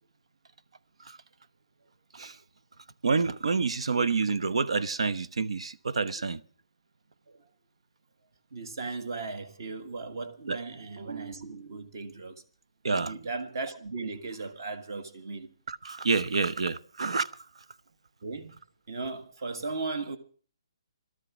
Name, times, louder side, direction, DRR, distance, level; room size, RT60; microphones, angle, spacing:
voice 1, 3.0-6.4 10.5-10.6 12.8-13.1 15.7-17.3, right 4 dB, 85° right, 0.9 m, -28 dB
voice 2, 8.5-12.4 12.9-15.5 18.2-18.5 18.9-20.2, right 3 dB, 45° right, 1.6 m, -37 dB
17.0 x 13.0 x 6.1 m
hypercardioid pair, 175°, 3 cm